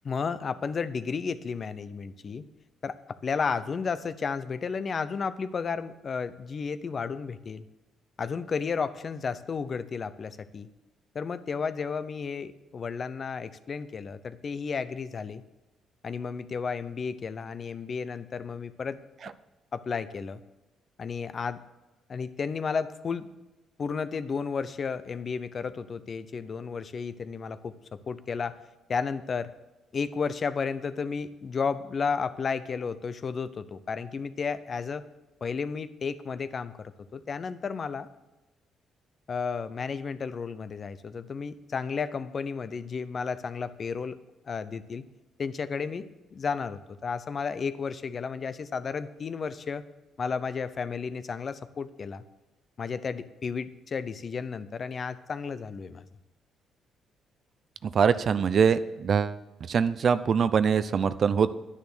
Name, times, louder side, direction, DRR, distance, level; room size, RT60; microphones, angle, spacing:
voice 1, 0.0-2.4 2.8-7.6 8.2-10.7 11.1-15.4 16.0-19.0 19.7-20.4 21.0-21.6 22.1-23.3 23.8-28.6 28.9-29.5 29.9-35.1 35.4-38.1 39.3-44.2 44.5-45.0 45.4-49.8 50.2-52.2 52.8-56.0, left 5 dB, 45° left, 13 dB, 0.7 m, -33 dB
voice 2, 57.8-59.3 59.7-61.5, right 6 dB, 55° right, 14 dB, 0.6 m, -23 dB
10.5 x 10.0 x 6.2 m, 1.0 s
cardioid pair, 90°, 0 cm